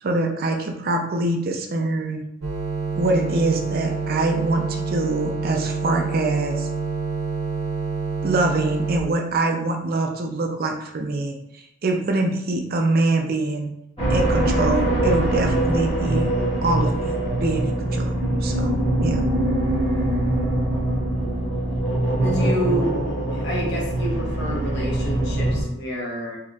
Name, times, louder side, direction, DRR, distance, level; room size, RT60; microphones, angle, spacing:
voice 1, 0.0-2.2 3.0-6.7 8.2-13.7 14.1-16.3 16.6-19.2, right 2 dB, 45° right, 3 dB, 0.4 m, -24 dB
sound 1, 2.4-9.0, right 4 dB, 70° right, 0.9 m, -27 dB
sound 2, 14.0-25.6, right 1 dB, 30° left, 1.2 m, -23 dB
voice 2, 22.2-22.9 23.3-26.4, equal, 55° left, -2 dB, 1.0 m, -28 dB
4.1 x 2.8 x 2.4 m, 0.80 s
head